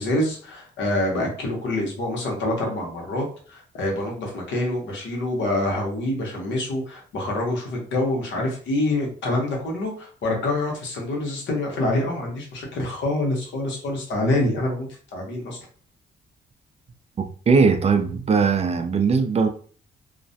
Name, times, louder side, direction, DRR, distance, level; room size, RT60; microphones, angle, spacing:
voice 1, 0.0-15.6, left 1 dB, 80° left, 1.0 m, -26 dB
voice 2, 17.2-19.5, right 5 dB, 35° right, 0.4 m, -20 dB
2.4 x 2.1 x 2.6 m
cardioid pair, 95°, 19 cm